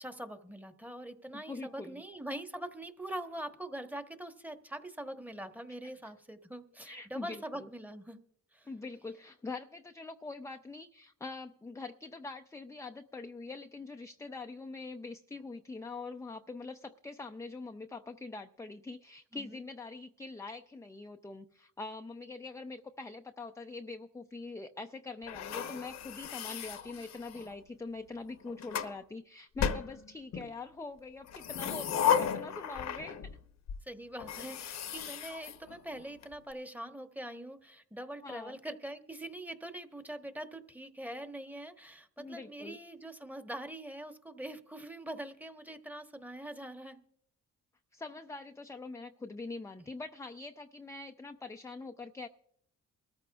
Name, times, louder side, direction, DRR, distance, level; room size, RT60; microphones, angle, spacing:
voice 1, 0.0-8.2 8.5-8.7 19.3-19.6 33.8-47.0, right 1 dB, 5° right, 7 dB, 1.1 m, -43 dB
voice 2, 1.3-2.0 6.0-6.1 6.8-7.7 8.7-33.2 38.2-38.6 42.2-42.8 47.9-52.3, left 3 dB, 10° left, 6 dB, 0.4 m, -44 dB
sound 1, 25.3-27.5 28.3-29.0 29.6-30.5 31.2-33.4 33.7-33.8 34.2-36.2, left 8 dB, 60° left, 0.9 m, -34 dB
23.0 x 14.0 x 2.3 m, 0.69 s
cardioid pair, 90°, 30 cm